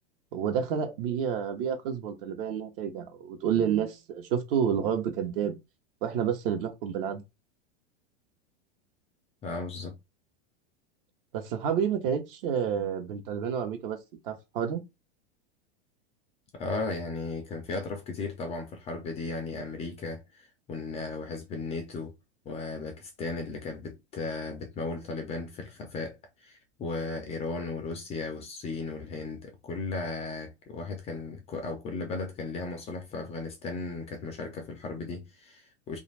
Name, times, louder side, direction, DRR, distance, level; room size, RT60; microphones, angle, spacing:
voice 1, 0.3-5.6 6.0-7.2 11.3-14.0 14.2-14.8, right 8 dB, 60° right, 0.9 m, -29 dB
voice 2, 9.4-10.0 16.5-22.1 22.5-36.0, left 3 dB, 20° left, 0.4 m, -36 dB
2.5 x 2.4 x 3.2 m
supercardioid pair, 135°, 33 cm